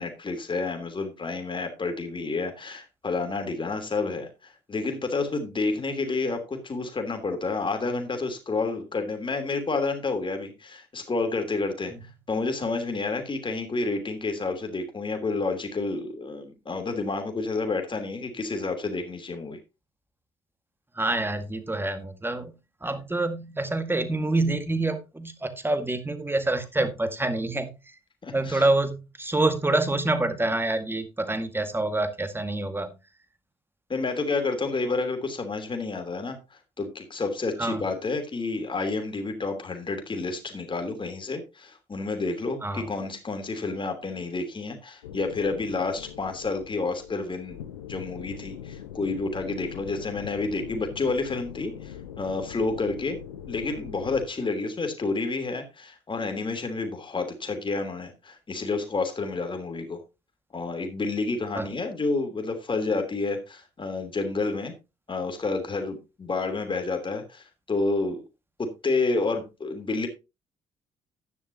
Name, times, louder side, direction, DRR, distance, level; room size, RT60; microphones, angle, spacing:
voice 1, 0.0-4.3 4.7-11.9 12.3-19.6 28.2-28.7 33.9-36.4 36.8-47.6 47.9-53.2 53.5-60.0 60.5-64.7 65.1-68.2 68.6-70.1, left 3 dB, 30° left, 3.1 m, -29 dB
voice 2, 21.0-22.5 22.8-27.7 28.3-32.9 37.6-37.8 42.6-42.9 61.5-61.7, right 2 dB, 15° right, 1.9 m, -26 dB
sound 1, 45.0-54.3, left 9 dB, 80° left, 0.7 m, -42 dB
11.0 x 9.8 x 2.9 m
figure-of-eight pair, 45°, 17 cm